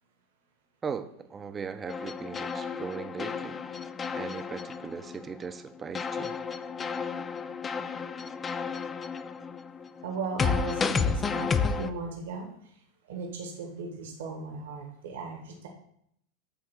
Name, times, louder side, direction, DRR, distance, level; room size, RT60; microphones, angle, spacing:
voice 1, 0.8-3.6 4.1-6.4, right 6 dB, 25° right, 9 dB, 0.8 m, -38 dB
sound 1, 1.9-5.5 5.9-11.9, left 5 dB, 25° left, 0.5 m, -32 dB
voice 2, 10.0-12.5 13.0-15.7, right 4 dB, 75° right, 2 dB, 1.5 m, -37 dB
8.7 x 3.5 x 6.3 m, 0.73 s
hypercardioid pair, 90°, 0 cm